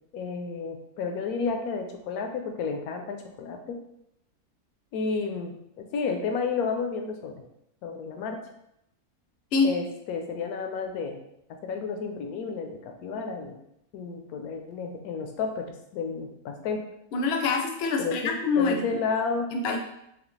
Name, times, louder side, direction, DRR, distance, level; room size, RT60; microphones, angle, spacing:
voice 1, 0.1-3.8 4.9-7.4 7.8-8.4 9.6-11.2 11.6-13.5 13.9-15.7 15.9-16.8 18.0-19.5, left 5 dB, 80° left, 4 dB, 1.1 m, -31 dB
voice 2, 17.1-19.0 19.5-19.8, left 4 dB, 60° left, 2 dB, 0.7 m, -25 dB
4.1 x 2.9 x 3.1 m, 0.78 s
omnidirectional pair, 1.6 m